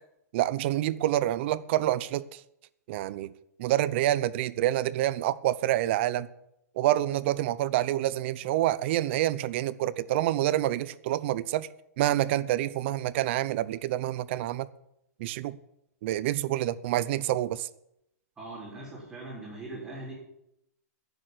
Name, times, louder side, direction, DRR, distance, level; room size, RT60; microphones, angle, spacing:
voice 1, 0.3-2.4 2.9-3.3 3.6-6.3 6.8-11.7 12.0-14.7 15.2-15.6 16.0-17.7, right 14 dB, 45° right, 0.6 m, -27 dB
voice 2, 18.4-20.1, right 2 dB, 15° right, 4.1 m, -41 dB
10.5 x 6.5 x 9.2 m
hypercardioid pair, 150°, 9 cm